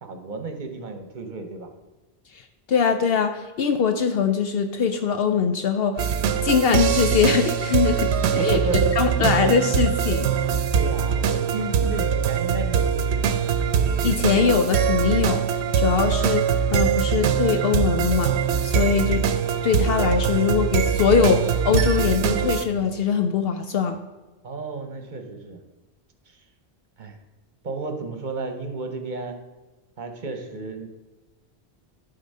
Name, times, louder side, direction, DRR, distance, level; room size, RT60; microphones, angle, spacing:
voice 1, 0.0-1.7 8.2-8.9 10.7-13.4 24.4-25.6 26.3-26.4 27.0-27.2 27.6-29.4 30.0-30.9, right 3 dB, 50° right, 6 dB, 1.0 m, -32 dB
voice 2, 2.7-6.0 6.4-8.6 8.9-10.3 14.0-15.4 15.7-16.4 16.7-18.3 18.6-19.2 19.6-24.0, left 6 dB, 70° left, 7 dB, 0.8 m, -22 dB
sound 1, 6.0-22.6, right 7 dB, 80° right, 0.9 m, -22 dB
11.5 x 3.9 x 5.4 m, 1.1 s
omnidirectional pair, 1.1 m